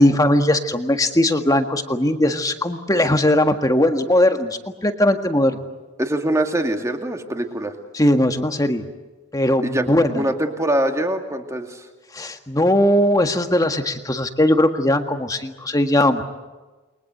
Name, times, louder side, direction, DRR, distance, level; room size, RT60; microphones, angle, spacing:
voice 1, 0.0-5.6 7.9-8.8 9.3-10.2 12.1-16.2, left 1 dB, 15° left, 6 dB, 1.7 m, -19 dB
voice 2, 6.0-7.7 9.6-9.8 10.1-11.8, right 1 dB, 15° right, 4 dB, 2.4 m, -23 dB
29.5 x 23.0 x 8.0 m, 1.2 s
head